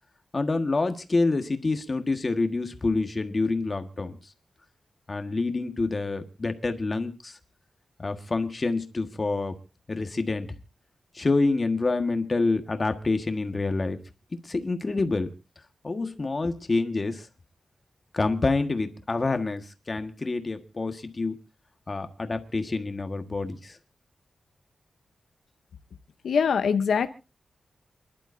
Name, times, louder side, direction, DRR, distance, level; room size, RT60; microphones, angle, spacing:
voice 1, 0.3-4.1 5.1-7.4 8.0-9.5 9.9-10.5 11.1-14.0 14.4-15.3 15.8-17.3 18.1-21.4 21.9-23.8, left 3 dB, 30° left, 7 dB, 1.5 m, -27 dB
voice 2, 26.2-27.1, left 6 dB, 90° left, 10 dB, 0.8 m, -23 dB
28.5 x 11.5 x 2.6 m, 0.31 s
wide cardioid pair, 120°, 0 cm